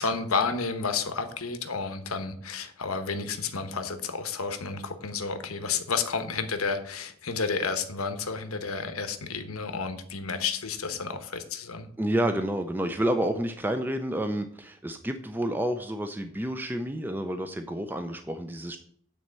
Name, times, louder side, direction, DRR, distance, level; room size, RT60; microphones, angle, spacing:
voice 1, 0.0-11.9, left 5 dB, 90° left, 8 dB, 1.1 m, -31 dB
voice 2, 12.0-18.8, right 1 dB, 10° right, 7 dB, 0.4 m, -29 dB
9.3 x 4.3 x 7.3 m, 0.62 s
head